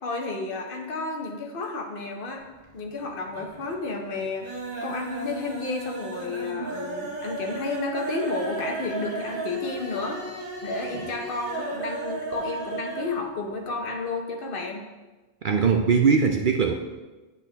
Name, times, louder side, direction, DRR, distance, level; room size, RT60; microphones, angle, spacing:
voice 1, 0.0-2.4 2.7-4.5 4.8-10.2 10.6-14.8, left 3 dB, 45° left, 2 dB, 1.1 m, -31 dB
sound 1, 2.4-3.0 3.3-3.8 4.1-13.2 13.4-13.5 13.8-13.9, right 3 dB, 80° right, 1.7 m, -35 dB
voice 2, 15.4-16.7, right 5 dB, 65° right, 4 dB, 0.5 m, -21 dB
8.6 x 6.1 x 3.4 m, 1.2 s
omnidirectional pair, 1.3 m